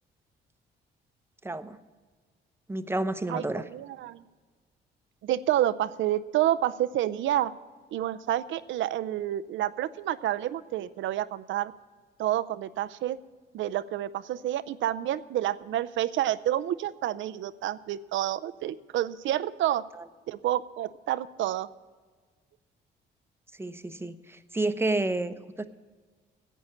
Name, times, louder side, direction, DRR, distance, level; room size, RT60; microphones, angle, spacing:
voice 1, 1.4-1.8 2.7-3.6 20.0-20.1 23.6-25.6, right 2 dB, 10° right, 11 dB, 0.7 m, -30 dB
voice 2, 3.3-4.2 5.2-7.5 7.9-11.7 12.2-13.2 13.5-19.8 20.3-21.7, right 12 dB, 75° right, 14 dB, 0.6 m, -29 dB
11.0 x 8.7 x 8.4 m, 1.5 s
cardioid pair, 90°, 20 cm